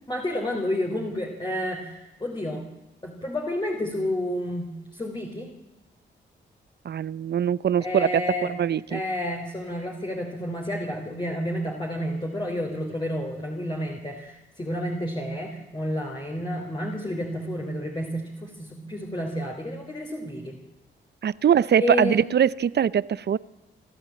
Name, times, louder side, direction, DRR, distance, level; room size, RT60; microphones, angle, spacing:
voice 1, 0.1-2.7 3.0-5.5 7.8-8.5 8.9-20.5 21.8-22.2, left 1 dB, 25° left, 0 dB, 3.7 m, -30 dB
voice 2, 6.8-8.1 8.4-9.0 21.2-23.4, right 8 dB, 60° right, 20 dB, 0.7 m, -22 dB
26.5 x 12.5 x 8.6 m, 1.0 s
cardioid pair, 80°, 20 cm